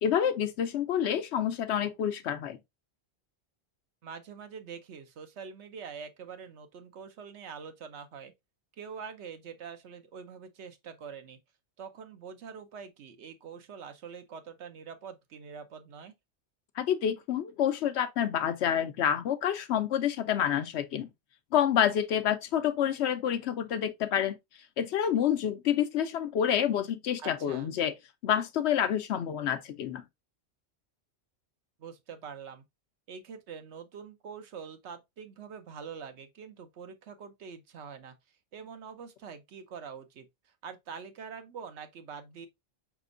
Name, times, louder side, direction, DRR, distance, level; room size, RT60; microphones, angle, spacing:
voice 1, 0.0-2.6 16.8-21.1 21.5-24.4 24.8-27.9 28.2-30.0, left 9 dB, 80° left, 0.9 m, -28 dB
voice 2, 4.0-8.3 8.8-11.4 11.8-16.1 27.2-27.8 31.8-32.6 33.1-38.1 38.5-42.5, right 6 dB, 80° right, 1.1 m, -45 dB
5.1 x 3.5 x 2.5 m
omnidirectional pair, 1.1 m